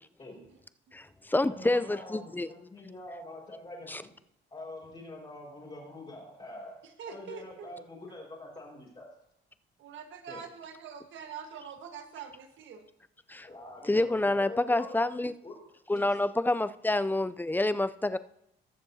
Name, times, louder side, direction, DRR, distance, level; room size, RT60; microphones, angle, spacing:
voice 1, 0.2-0.5 1.4-4.1 4.5-9.1 10.3-10.4 13.4-15.0 15.4-15.6, left 1 dB, 30° left, -7 dB, 4.8 m, -45 dB
voice 2, 0.9-2.5 3.9-4.0 13.3-13.5 13.9-15.3 15.9-18.2, left 2 dB, 10° left, 13 dB, 0.4 m, -28 dB
voice 3, 7.0-7.7 9.8-12.9, right 7 dB, 75° right, 6 dB, 1.4 m, -44 dB
21.0 x 7.0 x 2.8 m, 0.79 s
cardioid pair, 90°, 20 cm